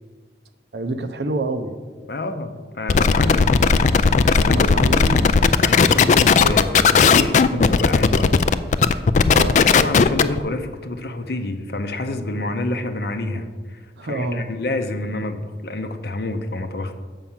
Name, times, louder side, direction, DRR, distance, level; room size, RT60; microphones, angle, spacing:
voice 1, 0.7-1.7 4.4-5.4 8.1-8.4 9.3-9.6 14.0-14.5, right 2 dB, 70° right, 7 dB, 0.7 m, -27 dB
voice 2, 2.1-3.8 4.2-4.7 5.6-8.5 9.5-17.0, left 2 dB, 60° left, 7 dB, 0.7 m, -28 dB
sound 1, 2.9-10.4, left 5 dB, 45° left, 0.3 m, -16 dB
7.2 x 5.5 x 7.3 m, 1.5 s
head